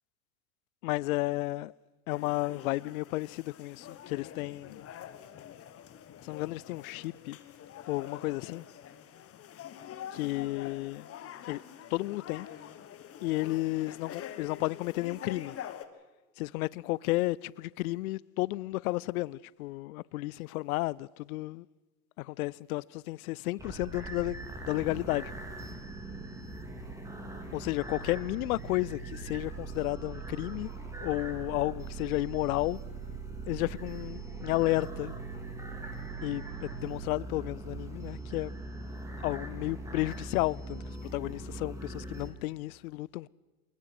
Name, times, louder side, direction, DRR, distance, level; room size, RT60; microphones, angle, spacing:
voice 1, 0.8-1.7 2.1-4.9 6.2-7.4 7.9-8.6 10.1-11.1 11.5-11.6 11.9-12.5 13.2-15.6 16.4-21.7 22.2-25.3 27.5-30.7 31.0-32.8 33.5-35.1 36.2-38.5 39.2-43.3, left 19 dB, 65° left, 0.6 m, -32 dB
sound 1, 2.1-15.8, left 10 dB, 30° left, 1.5 m, -46 dB
sound 2, 23.6-42.3, right 3 dB, 5° right, 3.4 m, -41 dB
23.0 x 21.0 x 6.0 m
hypercardioid pair, 105°, 46 cm